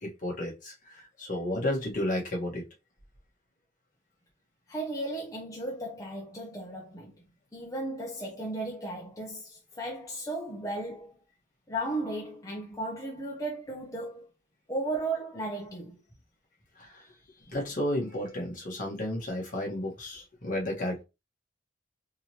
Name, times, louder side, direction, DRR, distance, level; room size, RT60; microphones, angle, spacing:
voice 1, 0.0-2.6 16.8-16.9 17.5-21.0, left 1 dB, 45° left, 1.5 m, -32 dB
voice 2, 4.7-7.1 7.5-11.2 11.7-14.3 14.7-16.0, right 2 dB, 20° left, 0.7 m, -35 dB
3.7 x 3.1 x 2.8 m
head